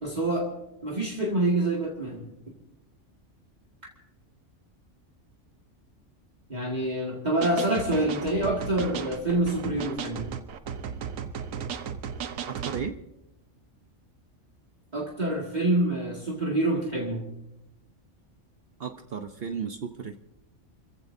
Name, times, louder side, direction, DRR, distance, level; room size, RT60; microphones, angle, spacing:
voice 1, 0.0-0.5 0.8-2.3 6.5-10.3 14.9-17.3, right 1 dB, 35° right, -2 dB, 2.2 m, -26 dB
sound 1, 7.4-12.9, right 7 dB, 90° right, 1.2 m, -35 dB
voice 2, 12.5-12.9 18.8-20.2, right 6 dB, 55° right, 6 dB, 1.0 m, -34 dB
28.5 x 15.5 x 2.7 m, 0.91 s
omnidirectional pair, 1.3 m